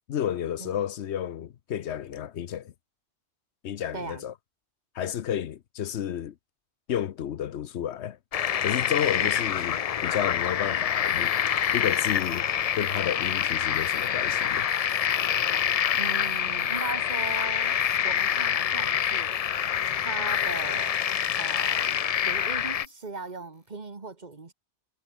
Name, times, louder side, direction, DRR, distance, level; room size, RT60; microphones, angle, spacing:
voice 1, 0.1-2.7 3.6-4.3 4.9-6.3 6.9-8.2 8.6-11.3 11.7-12.5 12.8-14.7, left 10 dB, 80° left, 1.0 m, -31 dB
voice 2, 3.9-4.3 9.2-9.4 15.9-17.8 18.0-19.5 20.0-21.0 21.3-22.0 22.2-24.5, right 3 dB, 40° right, 1.7 m, -38 dB
sound 1, 8.3-22.9, left 9 dB, 55° left, 0.4 m, -26 dB
sound 2, 9.5-9.9 10.3-10.8 11.1-11.7 12.1-12.2 12.4-12.9 13.3-13.8 14.4-14.7 15.4-16.4 16.7-17.5 18.1-18.8 19.5-19.8, equal, ahead, 4.3 m, -63 dB
sound 3, 10.7-23.7, left 2 dB, 30° left, 2.7 m, -53 dB
omnidirectional pair, 1.1 m